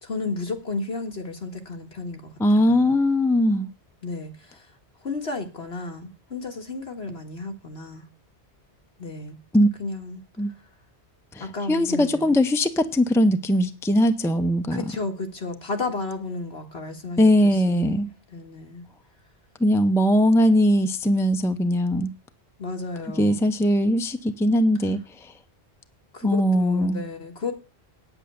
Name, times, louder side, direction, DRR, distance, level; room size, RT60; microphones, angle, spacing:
voice 1, 0.0-3.0 4.0-4.6 5.0-8.1 9.0-9.4 9.8-10.2 11.4-12.4 14.7-18.8 22.6-23.4 26.1-27.5, left 3 dB, 65° left, 3 dB, 2.1 m, -33 dB
voice 2, 2.4-3.7 9.5-9.7 10.4-10.5 11.4-14.8 17.2-18.1 19.6-22.1 23.2-25.0 26.2-27.0, equal, 5° left, 8 dB, 0.7 m, -20 dB
9.1 x 8.3 x 6.9 m, 0.34 s
omnidirectional pair, 1.1 m